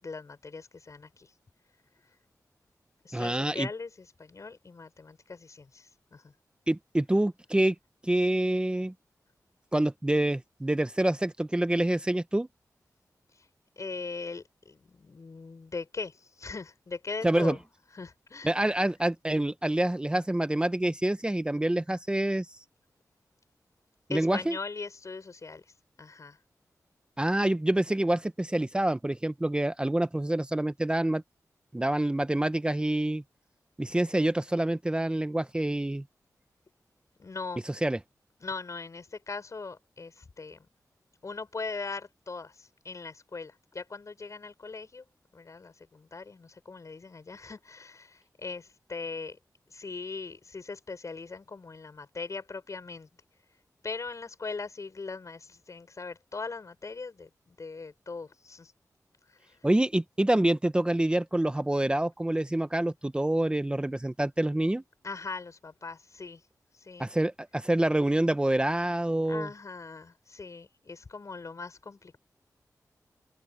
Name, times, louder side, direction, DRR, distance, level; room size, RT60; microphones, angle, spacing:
voice 1, 0.0-1.3 3.0-6.3 13.3-13.5 13.8-17.6 17.9-18.5 24.1-26.4 37.2-37.6 38.4-40.7 41.2-49.4 49.7-53.1 53.8-58.7 59.3-59.7 65.0-66.5 66.7-67.1 69.2-72.2, left 4 dB, 55° left, 6.2 m, -40 dB
voice 2, 3.1-3.7 6.7-7.7 8.0-8.9 9.7-12.5 17.2-17.6 18.4-22.5 24.1-24.6 27.2-31.2 31.7-33.2 33.8-36.0 37.7-38.0 59.6-64.8 67.0-69.5, right 1 dB, 15° right, 0.8 m, -27 dB
wide cardioid pair, 75°, 6 cm